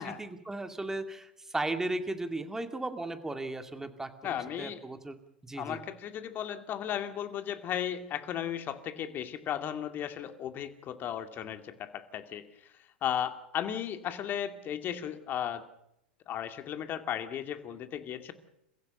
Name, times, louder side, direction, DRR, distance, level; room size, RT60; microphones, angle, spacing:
voice 1, 0.0-5.8, right 2 dB, 10° right, 8 dB, 2.4 m, -36 dB
voice 2, 4.2-4.8 5.6-12.5 13.0-15.7 16.3-18.3, left 10 dB, 35° left, 9 dB, 2.3 m, -35 dB
29.5 x 15.5 x 6.8 m, 0.80 s
hypercardioid pair, 95°, 6 cm